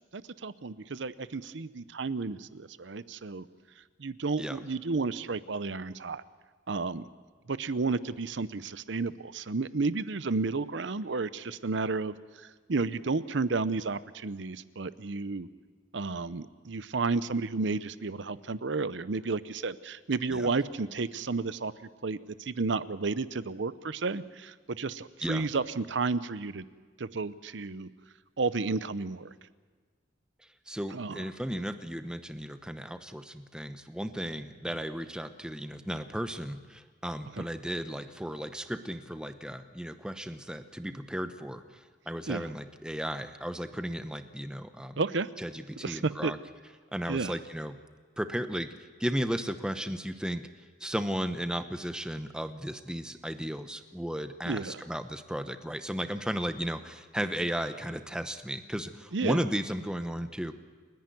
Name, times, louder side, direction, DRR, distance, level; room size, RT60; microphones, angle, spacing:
voice 1, 0.0-3.5 4.0-6.2 6.7-7.1 7.5-15.5 15.9-21.7 22.0-26.6 27.0-27.9 28.4-29.3 30.9-31.2 37.4-37.5 42.3-42.5 45.0-45.3 45.8-46.3 47.1-47.3 54.5-54.8 59.1-59.4, right 3 dB, 65° right, 15 dB, 0.7 m, -32 dB
voice 2, 30.7-45.0 45.4-46.4 46.9-47.8 48.2-50.5 50.8-60.5, equal, 5° right, 9 dB, 0.9 m, -35 dB
29.5 x 10.5 x 9.2 m, 1.5 s
head